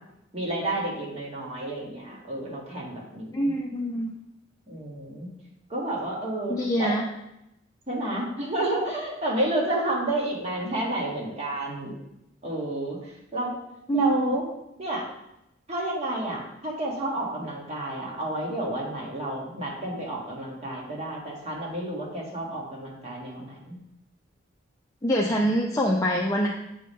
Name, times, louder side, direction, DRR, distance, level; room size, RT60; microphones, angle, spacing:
voice 1, 0.3-3.5 4.7-5.3 5.7-7.0 7.9-11.9 12.4-13.5 13.9-14.4 14.8-15.0 15.7-23.8, right 1 dB, 35° right, -3 dB, 1.7 m, -30 dB
voice 2, 3.3-4.1 6.5-7.0 13.9-14.3 25.0-26.5, equal, 20° left, -2 dB, 0.5 m, -24 dB
8.5 x 3.6 x 4.2 m, 0.85 s
head